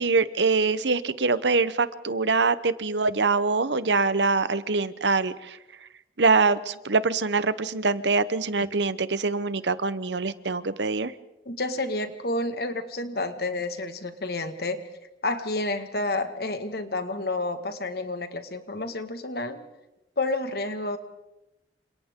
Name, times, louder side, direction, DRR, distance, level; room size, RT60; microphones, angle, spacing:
voice 1, 0.0-5.6 6.2-11.1, right 4 dB, 75° right, 15 dB, 1.0 m, -24 dB
voice 2, 11.5-14.9 15.2-19.6 20.2-21.0, left 2 dB, 55° left, 8 dB, 1.9 m, -30 dB
29.5 x 27.0 x 3.8 m, 0.96 s
head